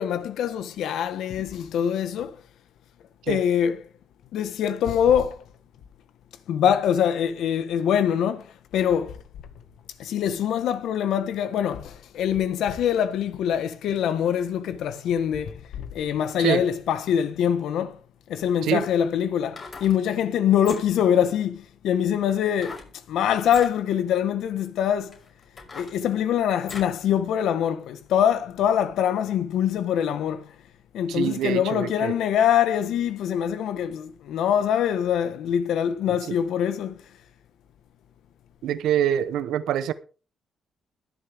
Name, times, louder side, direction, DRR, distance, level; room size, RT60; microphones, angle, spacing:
voice 1, 0.0-2.3 3.3-3.8 4.3-5.4 6.5-8.5 8.7-9.2 10.0-18.0 18.3-22.8 23.1-25.2 25.7-30.5 30.9-37.0, left 9 dB, 85° left, 1.4 m, -24 dB
sound 1, 19.4-20.0 20.5-21.1 22.6-22.9 23.4-23.7 24.5-24.6 25.1-27.0 27.4-27.5, left 4 dB, 45° left, 5.7 m, -41 dB
voice 2, 31.1-32.1 38.6-39.9, right 10 dB, 85° right, 0.9 m, -25 dB
21.0 x 7.4 x 3.6 m
cardioid pair, 80°, 0 cm